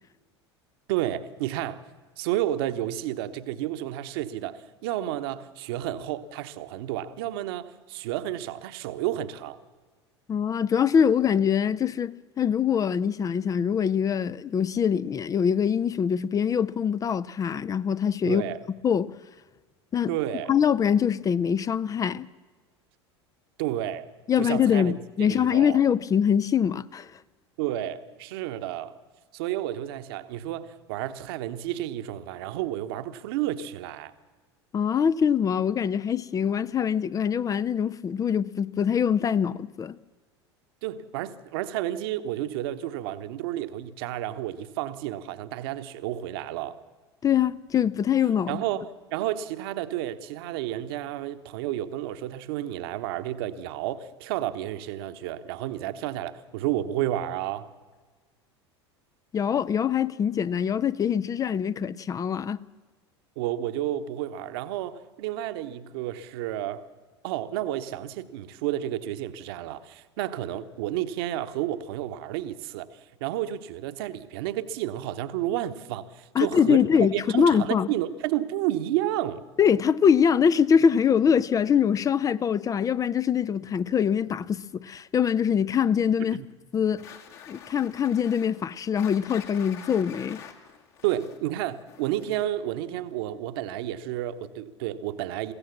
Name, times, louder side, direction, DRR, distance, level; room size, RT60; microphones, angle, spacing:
voice 1, 0.9-1.8 2.2-9.6 18.2-18.6 20.1-20.5 23.6-24.1 24.4-24.9 25.3-25.8 27.6-29.0 29.3-34.1 40.8-46.8 48.5-57.7 63.4-66.9 67.2-79.4 86.2-86.5 91.0-95.5, right 13 dB, 55° right, 1.2 m, -31 dB
voice 2, 10.3-18.4 18.8-19.1 19.9-20.1 20.5-22.3 24.3-27.1 34.7-40.0 47.2-48.6 59.3-62.6 76.3-77.9 79.6-86.4 86.7-87.0 87.5-90.5, left 7 dB, 25° left, 0.5 m, -23 dB
sound 1, 87.0-92.6, left 8 dB, 60° left, 2.9 m, -47 dB
22.5 x 16.0 x 7.2 m
figure-of-eight pair, 75°, 15 cm